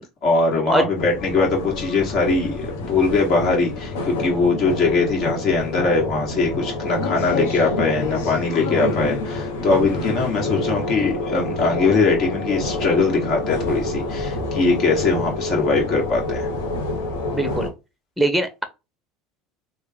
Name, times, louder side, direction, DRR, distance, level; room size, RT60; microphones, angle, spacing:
voice 1, 0.2-16.5, left 3 dB, 55° left, 1.6 m, -21 dB
sound 1, 1.0-17.7, left 2 dB, 75° left, 0.8 m, -27 dB
voice 2, 17.3-17.7 18.2-18.6, right 1 dB, ahead, 0.8 m, -21 dB
3.2 x 2.4 x 3.4 m
hypercardioid pair, 80°, 0 cm